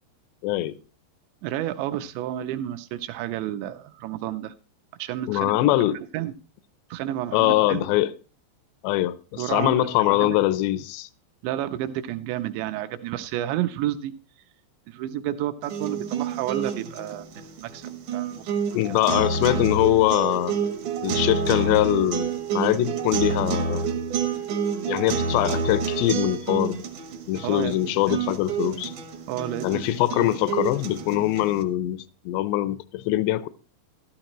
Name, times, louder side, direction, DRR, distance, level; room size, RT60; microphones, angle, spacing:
voice 1, 0.4-0.8 5.3-6.0 7.3-8.1 8.8-11.1 18.7-20.6 21.0-23.8 24.9-26.8 27.3-28.9 29.6-33.5, left 15 dB, 80° left, 2.7 m, -23 dB
voice 2, 1.4-4.5 5.0-6.3 6.9-7.9 9.4-10.4 11.4-14.1 14.9-17.8 18.1-18.8 27.4-27.7 28.1-28.2 29.3-29.8, right 13 dB, 80° right, 2.8 m, -31 dB
sound 1, 15.6-31.6, right 5 dB, 65° right, 2.0 m, -29 dB
12.5 x 12.5 x 3.0 m
omnidirectional pair, 5.3 m